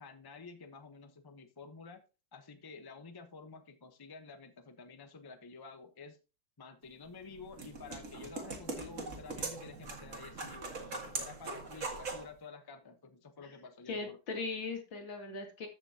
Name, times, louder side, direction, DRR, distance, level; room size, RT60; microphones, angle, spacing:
voice 1, 0.0-2.0 2.3-6.2 6.6-14.2, left 4 dB, 20° left, 7 dB, 0.6 m, -50 dB
sound 1, 7.0-12.3, right 3 dB, 45° right, 2.0 m, -41 dB
voice 2, 13.9-15.7, left 3 dB, 90° left, 3 dB, 2.9 m, -39 dB
14.0 x 6.0 x 2.8 m, 0.32 s
omnidirectional pair, 2.0 m